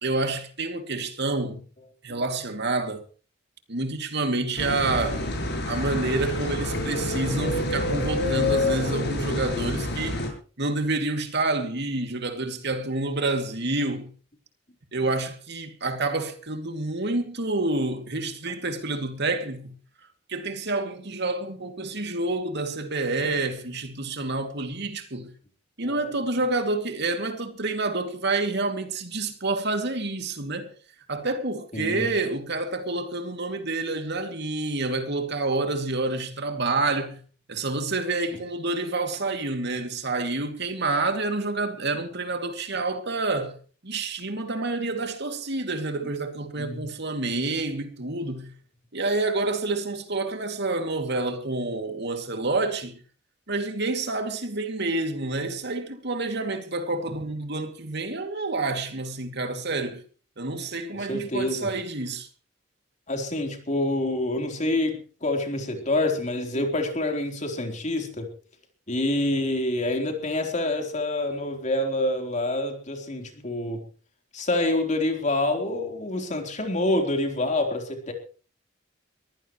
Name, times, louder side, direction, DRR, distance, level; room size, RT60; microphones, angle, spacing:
voice 1, 0.0-1.6 2.0-3.0 3.7-5.2 5.7-10.2 10.6-14.1 14.9-19.7 20.3-25.3 25.8-30.7 31.1-37.2 37.5-43.6 43.8-48.5 48.9-53.0 53.5-60.0 60.4-62.3, right 2 dB, 60° right, 2.6 m, -28 dB
sound 1, 4.6-10.3, left 2 dB, 60° left, 7.4 m, -27 dB
voice 2, 25.8-26.2 31.7-32.1 46.6-46.9 60.9-61.7 63.1-68.3 68.9-73.8 74.3-78.1, left 1 dB, 40° left, 3.9 m, -27 dB
23.5 x 15.5 x 3.2 m
head